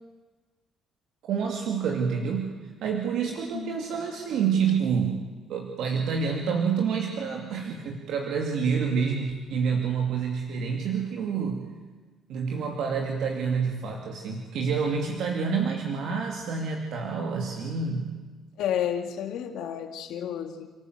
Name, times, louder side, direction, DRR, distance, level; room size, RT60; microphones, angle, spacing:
voice 1, 1.2-11.7 12.3-18.2, right 6 dB, 80° right, 2 dB, 2.5 m, -28 dB
voice 2, 18.6-20.7, left 9 dB, 85° left, 6 dB, 2.4 m, -31 dB
30.0 x 14.0 x 8.1 m, 1.3 s
cardioid pair, 95°, 0 cm